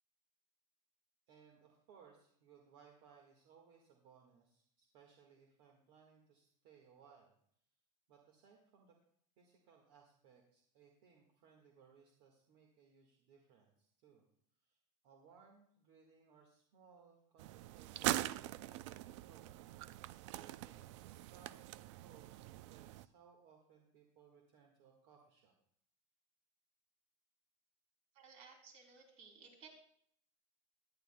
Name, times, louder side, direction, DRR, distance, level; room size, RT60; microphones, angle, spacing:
voice 1, 1.3-7.3 8.1-9.0 9.4-14.2 14.6-19.6 20.3-25.5, right 6 dB, 60° right, 1 dB, 1.7 m, -65 dB
sound 1, 17.4-23.1, right 15 dB, 85° right, 0.4 m, -43 dB
voice 2, 28.1-29.7, right 5 dB, 45° right, 2 dB, 3.1 m, -58 dB
18.0 x 11.0 x 2.2 m, 0.66 s
cardioid pair, 170°, 15 cm